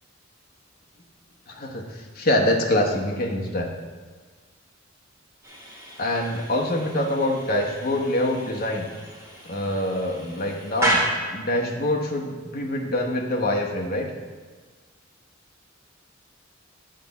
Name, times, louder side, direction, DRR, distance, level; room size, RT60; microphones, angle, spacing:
voice 1, 1.5-3.7 6.0-8.9 9.5-11.0 11.3-14.1, left 1 dB, 45° left, 1 dB, 1.0 m, -25 dB
sound 1, 5.4-11.6, right 1 dB, 15° right, 2.2 m, -31 dB
10.0 x 4.1 x 7.1 m, 1.5 s
head